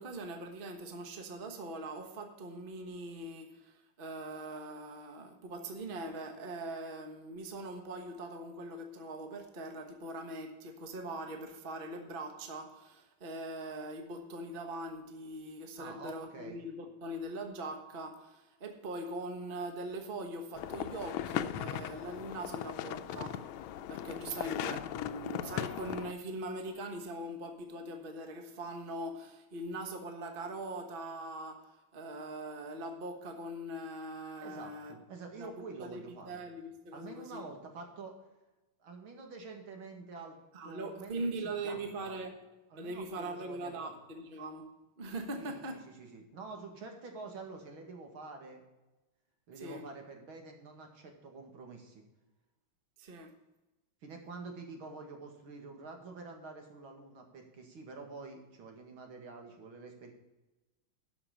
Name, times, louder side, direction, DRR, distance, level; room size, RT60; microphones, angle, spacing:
voice 1, 0.0-23.5 23.9-35.0 35.4-35.5 35.8-37.4 40.5-42.4 42.8-44.7 45.0-45.8 49.6-49.9 53.0-53.3, right 1 dB, 30° right, 1.2 m, -41 dB
voice 2, 15.8-16.6 34.4-36.4 36.9-38.1 38.8-40.4 40.6-42.1 42.7-43.9 45.4-48.6 49.5-52.0 54.0-60.1, right 3 dB, 80° right, 2.7 m, -47 dB
sound 1, 20.5-26.1, left 10 dB, 85° left, 1.4 m, -38 dB
12.0 x 5.9 x 5.9 m
omnidirectional pair, 2.2 m